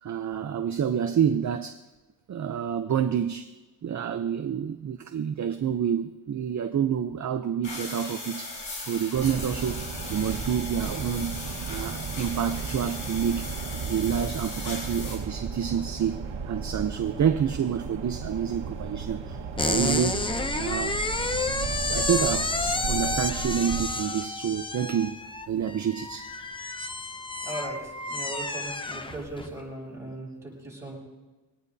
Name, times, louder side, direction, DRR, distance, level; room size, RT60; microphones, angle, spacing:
voice 1, 0.0-1.8 2.3-3.5 3.8-11.4 11.7-13.5 13.8-20.2 20.5-21.0 21.9-25.2 25.5-26.3, right 8 dB, 40° right, 0.6 m, -28 dB
sound 1, 7.6-15.1, left 2 dB, 85° left, 6.3 m, -38 dB
sound 2, 9.1-23.8, right 5 dB, 90° right, 1.5 m, -35 dB
sound 3, 19.6-29.5, left 2 dB, 10° left, 0.5 m, -30 dB
voice 2, 27.4-31.0, right 1 dB, 5° right, 7.0 m, -38 dB
23.0 x 18.0 x 2.7 m
wide cardioid pair, 170°, 44 cm